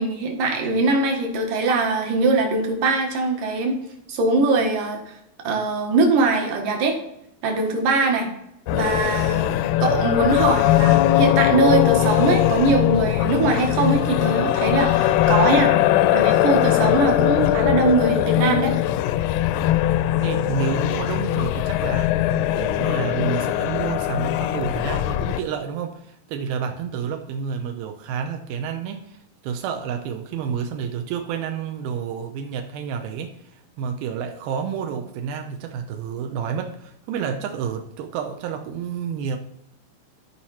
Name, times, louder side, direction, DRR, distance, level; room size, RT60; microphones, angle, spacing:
voice 1, 0.0-3.8 4.1-5.1 5.4-7.0 7.4-8.3 8.7-15.7 16.1-18.7, right 3 dB, 70° right, 2 dB, 3.1 m, -22 dB
sound 1, 8.7-25.4, left 13 dB, 80° left, 1.9 m, -20 dB
voice 2, 20.2-22.2 22.6-29.2 29.4-39.4, right 7 dB, 90° right, 4 dB, 2.7 m, -29 dB
14.5 x 4.9 x 4.2 m, 0.77 s
omnidirectional pair, 4.1 m